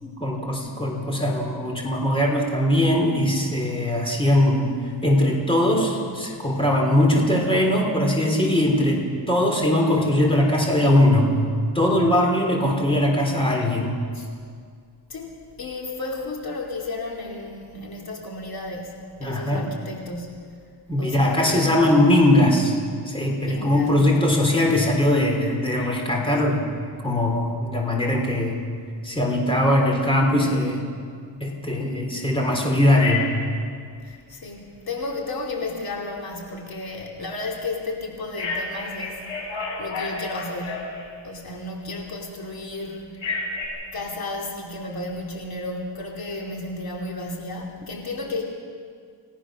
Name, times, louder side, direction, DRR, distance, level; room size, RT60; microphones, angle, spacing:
voice 1, 0.0-11.3 11.7-14.0 19.2-19.7 20.9-22.8 23.1-26.7 27.0-28.6 29.0-30.9 31.4-33.3, left 1 dB, 10° left, 0 dB, 3.5 m, -21 dB
voice 2, 15.1-20.6 21.0-21.8 23.4-24.0 34.0-39.2 39.8-41.0 41.2-43.2 43.9-48.4, left 2 dB, 50° left, 0 dB, 2.8 m, -33 dB
Telephone, 33.0-33.5 38.4-41.2 43.2-43.7, left 4 dB, 70° left, 7.3 m, -30 dB
29.0 x 17.5 x 6.3 m, 2.1 s
wide cardioid pair, 165°, 48 cm